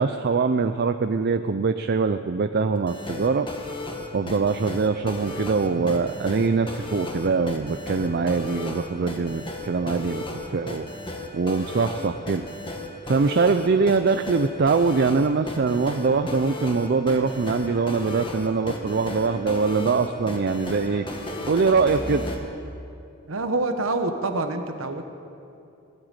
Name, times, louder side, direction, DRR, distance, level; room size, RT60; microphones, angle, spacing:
voice 1, 0.0-3.5 4.1-10.9 11.3-12.4 13.1-21.0 21.4-22.2, right 4 dB, 50° right, 9 dB, 0.4 m, -23 dB
sound 1, 2.8-22.4, left 2 dB, 25° left, 1.6 m, -34 dB
voice 2, 23.3-25.1, right 2 dB, 70° right, 7 dB, 1.1 m, -26 dB
17.5 x 8.0 x 8.9 m, 2.6 s
head